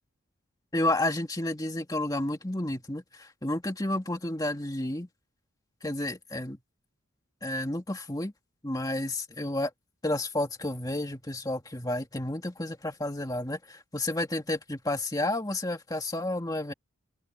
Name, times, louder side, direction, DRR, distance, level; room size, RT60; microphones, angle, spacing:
voice 1, 0.7-5.1 5.8-6.6 7.4-8.3 8.6-9.7 10.0-16.7, left 1 dB, 20° left, 2.2 m, -31 dB
open air
head